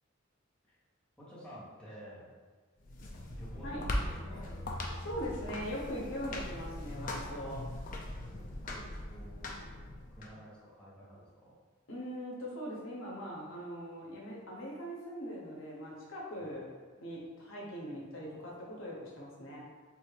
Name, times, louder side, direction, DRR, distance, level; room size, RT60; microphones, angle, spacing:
voice 1, 1.2-2.3 3.4-4.5 8.3-9.6 10.1-11.6 16.4-16.5, equal, 5° left, -10 dB, 0.9 m, -52 dB
sound 1, 2.8-10.3, left 1 dB, 40° left, 0.4 m, -40 dB
voice 2, 5.0-7.6 11.9-16.7 17.0-19.7, equal, 80° left, -3 dB, 0.7 m, -41 dB
3.1 x 2.5 x 3.2 m, 1.4 s
head